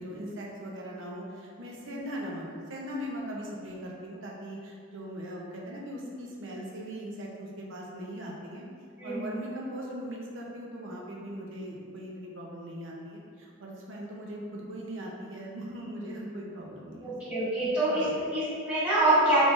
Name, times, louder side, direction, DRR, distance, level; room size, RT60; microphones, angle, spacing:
voice 1, 0.0-8.6 9.0-17.4 18.1-18.2, equal, 70° right, -3 dB, 0.6 m, -40 dB
voice 2, 9.0-9.3 17.0-18.0 18.3-19.4, right 1 dB, 10° right, -18 dB, 1.2 m, -26 dB
3.7 x 3.3 x 2.4 m, 2.2 s
head